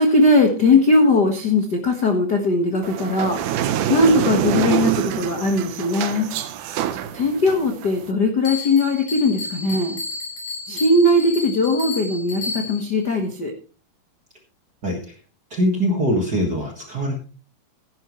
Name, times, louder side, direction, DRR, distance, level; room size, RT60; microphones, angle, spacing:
voice 1, 0.0-6.3 7.1-10.0 10.7-13.5, left 2 dB, 75° left, 3 dB, 0.9 m, -19 dB
sound 1, 2.8-8.1, right 11 dB, 70° right, 2.0 m, -25 dB
Bell, 8.4-13.0, left 3 dB, 40° left, 6.7 m, -32 dB
voice 2, 14.8-15.1 15.5-17.2, equal, 45° right, 1 dB, 1.4 m, -22 dB
16.0 x 10.5 x 3.2 m, 0.37 s
omnidirectional pair, 4.4 m